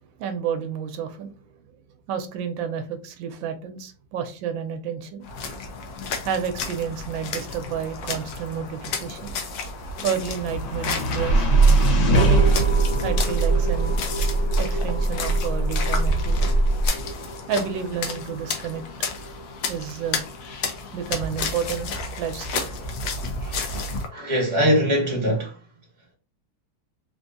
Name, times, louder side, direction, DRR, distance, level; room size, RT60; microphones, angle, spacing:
voice 1, 0.2-1.3 2.1-5.2 6.2-9.3 10.0-11.5 12.2-12.5 13.0-14.0 14.6-16.5 17.5-18.8 19.7-20.2 20.9-22.7 23.7-23.9, right 7 dB, 90° right, 1.3 m, -30 dB
sound 1, 5.2-24.1, left 3 dB, 65° left, 1.0 m, -32 dB
sound 2, 9.6-21.9, right 1 dB, 85° left, 1.7 m, -28 dB
sound 3, 11.3-16.9, right 3 dB, 60° right, 1.0 m, -21 dB
voice 2, 23.4-23.7 24.1-25.5, equal, 15° right, 1.4 m, -22 dB
3.5 x 2.6 x 2.5 m
omnidirectional pair, 2.0 m